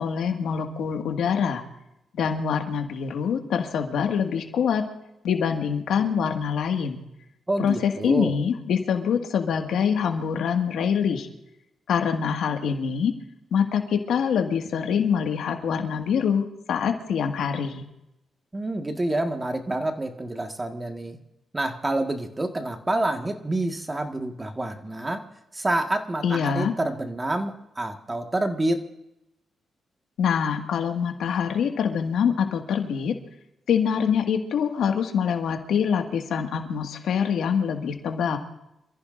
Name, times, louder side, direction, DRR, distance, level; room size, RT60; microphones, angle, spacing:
voice 1, 0.0-1.6 2.1-4.8 5.2-7.0 7.6-11.3 11.9-13.1 13.5-17.8 26.2-26.7 30.2-33.2 33.7-38.4, left 7 dB, 85° left, 4 dB, 1.9 m, -25 dB
voice 2, 7.5-8.4 18.5-21.2 21.5-25.2 25.5-28.9, right 1 dB, 20° right, 4 dB, 1.7 m, -28 dB
27.5 x 14.5 x 2.6 m, 0.85 s
cardioid pair, 100°, 0 cm